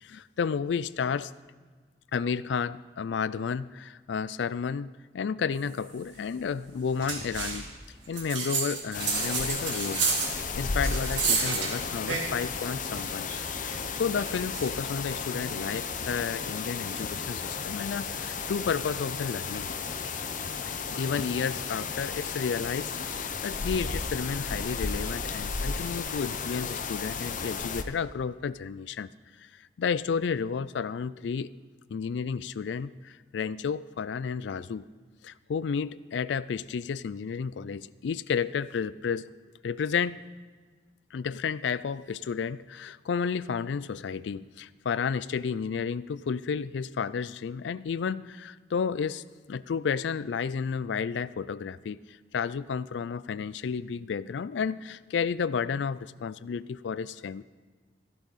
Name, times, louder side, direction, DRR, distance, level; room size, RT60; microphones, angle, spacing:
voice 1, 0.0-1.3 2.1-4.9 5.1-7.6 8.1-10.1 10.3-13.3 13.6-19.7 20.7-29.1 29.8-31.5 31.9-34.8 35.2-39.3 39.6-40.2 41.1-52.0 52.3-57.4, left 6 dB, 75° left, 18 dB, 0.4 m, -32 dB
sound 1, 7.0-7.7 8.1-12.5 12.9-14.7, right 5 dB, 90° right, 2.2 m, -31 dB
sound 2, 8.9-27.8, left 5 dB, 45° left, 0.7 m, -34 dB
15.0 x 12.0 x 4.1 m, 1.5 s
head